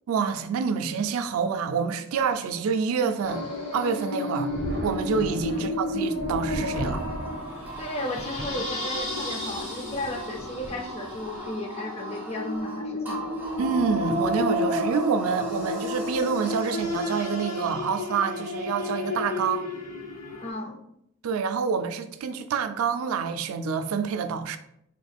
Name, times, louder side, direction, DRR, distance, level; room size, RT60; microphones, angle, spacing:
voice 1, 0.1-3.5 3.7-4.5 4.8-7.0 13.6-19.7 21.2-24.6, right 6 dB, 80° right, 0.3 m, -27 dB
sound 1, 3.2-20.5, left 2 dB, 55° left, 1.2 m, -32 dB
Thunder, 4.5-11.5 12.5-12.6 14.1-14.4 14.7-14.8 16.8-17.0 17.7-18.0, equal, 50° right, 0.7 m, -38 dB
sound 2, 6.7-16.9, right 3 dB, 10° right, 0.8 m, -41 dB
voice 2, 7.8-13.4 20.4-20.8, left 1 dB, 30° left, 0.4 m, -34 dB
3.6 x 3.4 x 2.3 m
head